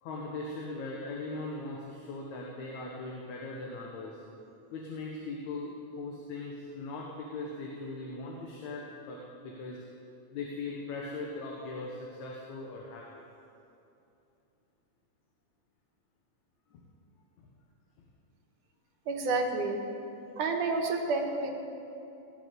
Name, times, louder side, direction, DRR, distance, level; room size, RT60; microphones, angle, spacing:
voice 1, 0.0-4.2 4.7-9.8 10.3-13.2 16.7-16.8, left 3 dB, 70° left, -2 dB, 2.7 m, -39 dB
voice 2, 19.1-19.8 20.4-21.5, right 3 dB, 80° right, 3 dB, 2.8 m, -29 dB
19.0 x 7.0 x 8.3 m, 2.8 s
omnidirectional pair, 3.6 m